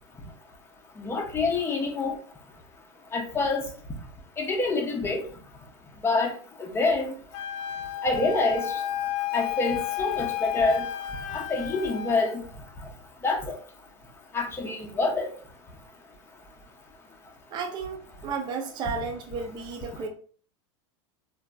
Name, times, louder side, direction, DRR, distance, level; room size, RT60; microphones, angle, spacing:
voice 1, 1.0-2.2 3.1-3.7 4.4-5.2 6.0-6.3 6.6-7.1 8.0-8.8 9.3-10.8 11.3-12.4 13.2-13.6 14.3-15.3, left 3 dB, 15° left, 0.8 m, -26 dB
Wind instrument woodwind instrument, 7.3-12.3, left 11 dB, 45° left, 0.4 m, -32 dB
voice 2, 17.5-20.1, right 5 dB, 30° right, 0.5 m, -33 dB
3.6 x 2.6 x 2.2 m
supercardioid pair, 120°, 16 cm